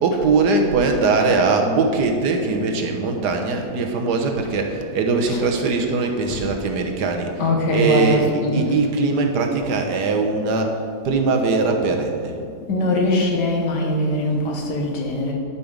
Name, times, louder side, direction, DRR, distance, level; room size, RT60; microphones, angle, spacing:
voice 1, 0.0-12.3, right 4 dB, 80° right, 3 dB, 1.5 m, -21 dB
voice 2, 6.0-6.4 7.4-8.8 12.7-15.3, left 1 dB, 85° left, 1 dB, 1.9 m, -22 dB
11.5 x 5.5 x 5.1 m, 2.4 s
omnidirectional pair, 1.8 m